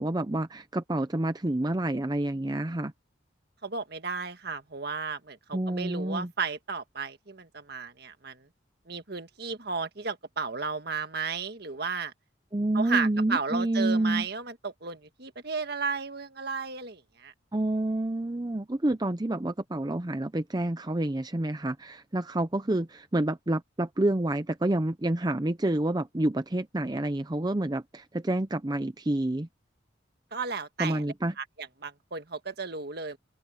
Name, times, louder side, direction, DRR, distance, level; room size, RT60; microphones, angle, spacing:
voice 1, 0.0-2.9 5.5-6.3 12.5-14.3 17.5-29.5 30.8-31.3, right 1 dB, 20° right, 0.6 m, -28 dB
voice 2, 3.6-8.5 8.9-12.1 12.7-17.3 30.3-31.0 31.4-33.2, right 5 dB, 55° right, 1.7 m, -34 dB
open air
head